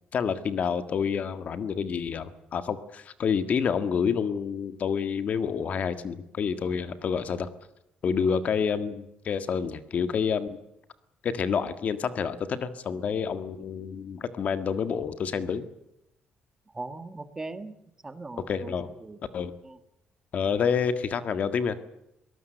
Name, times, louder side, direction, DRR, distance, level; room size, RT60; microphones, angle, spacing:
voice 1, 0.1-7.5 8.0-10.6 11.2-15.6 18.4-18.9 19.3-19.5 20.3-21.8, left 6 dB, 50° left, 11 dB, 1.7 m, -28 dB
voice 2, 16.7-17.7 18.0-18.7 19.0-19.2 19.6-19.8, right 3 dB, 15° right, 11 dB, 1.6 m, -39 dB
23.5 x 18.5 x 7.9 m, 0.83 s
cardioid pair, 135°, 3 cm